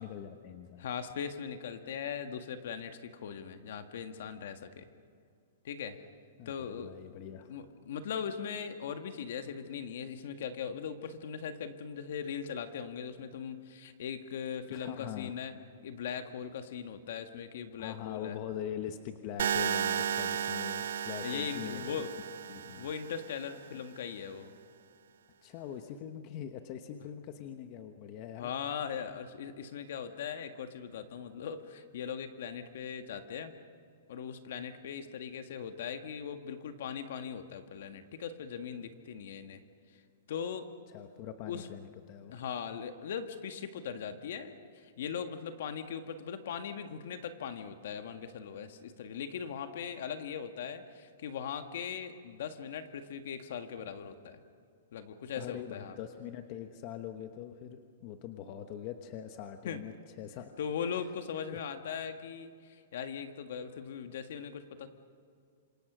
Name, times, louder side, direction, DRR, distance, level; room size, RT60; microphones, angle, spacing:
voice 1, 0.0-0.9 6.4-7.6 14.7-15.3 17.8-22.0 22.5-22.9 23.7-23.8 25.4-28.5 40.9-42.3 55.4-60.5 61.5-61.6, left 10 dB, 35° left, 7 dB, 1.1 m, -43 dB
voice 2, 0.8-4.9 5.6-6.0 6.5-6.9 7.5-15.5 15.8-18.4 21.2-22.1 22.6-24.5 28.4-33.6 34.1-39.6 40.3-40.7 41.5-41.7 42.3-54.4 54.9-56.0 59.7-59.8 60.6-64.9, left 7 dB, 60° left, 7 dB, 1.8 m, -39 dB
sound 1, 19.4-23.4, right 8 dB, 75° right, 1.0 m, -34 dB
28.0 x 26.0 x 6.3 m, 2.3 s
hypercardioid pair, 165°, 0 cm